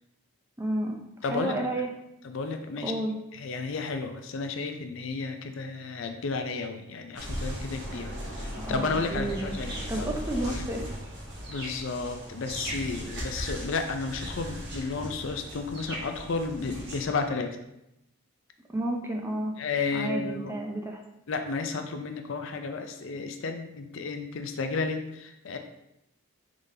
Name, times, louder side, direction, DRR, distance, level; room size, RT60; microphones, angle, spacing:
voice 1, 0.6-1.9 2.8-3.1 8.6-9.5 9.9-10.8 18.7-19.5 19.9-21.0, right 1 dB, 10° right, 1 dB, 0.4 m, -31 dB
voice 2, 1.2-1.5 2.2-2.9 3.4-10.1 10.4-10.6 11.5-17.5 19.6-20.5 21.3-25.6, left 4 dB, 60° left, 6 dB, 0.4 m, -32 dB
sound 1, 7.2-17.0, equal, 50° right, 1.2 m, -37 dB
4.9 x 3.8 x 2.7 m, 0.84 s
head